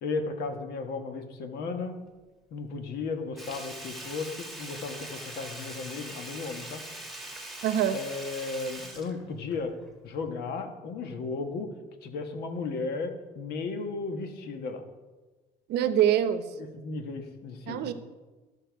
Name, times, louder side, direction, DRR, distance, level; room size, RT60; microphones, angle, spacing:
voice 1, 0.0-2.0 2.5-6.8 7.9-9.7 10.0-11.7 12.0-14.8 16.7-17.9, left 4 dB, 75° left, 6 dB, 1.3 m, -35 dB
Sink (filling or washing), 3.4-9.9 10.2-10.3, right 1 dB, ahead, 1.6 m, -42 dB
voice 2, 7.6-8.0 15.7-16.5 17.7-17.9, right 10 dB, 80° right, 11 dB, 0.8 m, -24 dB
13.5 x 5.7 x 4.6 m, 1.2 s
cardioid pair, 110°, 17 cm